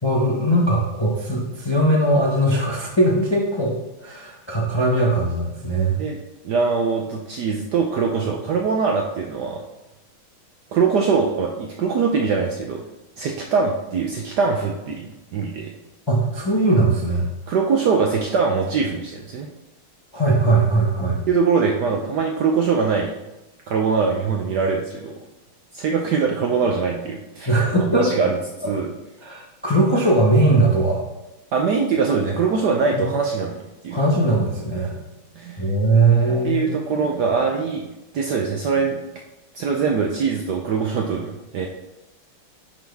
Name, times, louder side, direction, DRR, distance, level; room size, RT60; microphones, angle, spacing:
voice 1, 0.0-3.7 4.0-6.0 8.2-8.3 16.1-17.3 20.1-21.2 27.5-28.1 29.2-31.0 32.9-33.0 33.9-34.9 35.6-36.7, right 2 dB, 25° left, -3 dB, 0.5 m, -19 dB
voice 2, 6.4-9.6 10.7-12.8 13.2-15.0 15.3-15.7 17.5-19.5 21.3-23.1 23.7-25.1 25.7-27.5 28.0-28.4 28.6-28.9 31.5-33.6 33.8-34.0 35.4-35.7 36.4-39.0 39.5-41.7, right 5 dB, 70° right, 1 dB, 1.0 m, -22 dB
10.0 x 4.0 x 3.4 m, 0.97 s
omnidirectional pair, 2.4 m